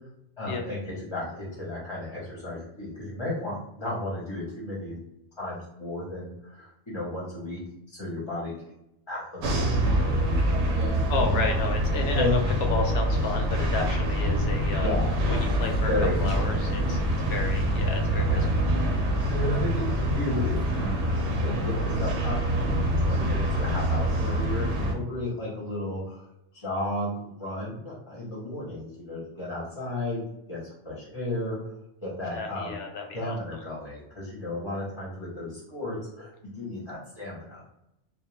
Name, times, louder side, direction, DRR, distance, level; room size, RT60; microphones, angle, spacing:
voice 1, 0.4-5.0 5.4-7.6 7.9-8.5 9.1-11.0 12.1-12.3 14.8-15.2 15.9-16.6 18.3-18.6 19.3-26.3 26.5-30.2 30.5-30.6 30.8-31.7 32.0-32.8 33.1-36.3 36.6-37.6, left 1 dB, 30° left, -6 dB, 0.7 m, -33 dB
sound 1, 9.4-24.9, equal, 75° right, 0.9 m, -25 dB
voice 2, 10.8-12.4 12.7-14.9 15.2-15.9 16.2-17.0 17.3-18.5 32.3-33.4, left 4 dB, 65° left, 3 dB, 0.8 m, -32 dB
2.3 x 2.2 x 3.0 m, 0.81 s
omnidirectional pair, 1.2 m